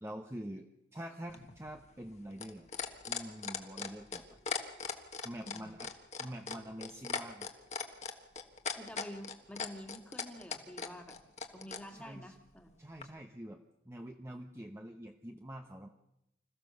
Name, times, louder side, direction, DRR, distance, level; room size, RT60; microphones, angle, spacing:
voice 1, 0.0-2.7 3.1-4.2 5.2-5.9 6.2-7.5 11.9-12.3 12.8-15.9, right 1 dB, 15° right, 3 dB, 0.9 m, -46 dB
sound 1, 1.3-11.8 13.0-13.1, left 5 dB, 40° left, 1.5 m, -38 dB
voice 2, 5.3-5.7 8.8-11.2 11.5-12.7, equal, 5° left, 4 dB, 2.0 m, -48 dB
26.0 x 15.0 x 6.8 m, 0.85 s
head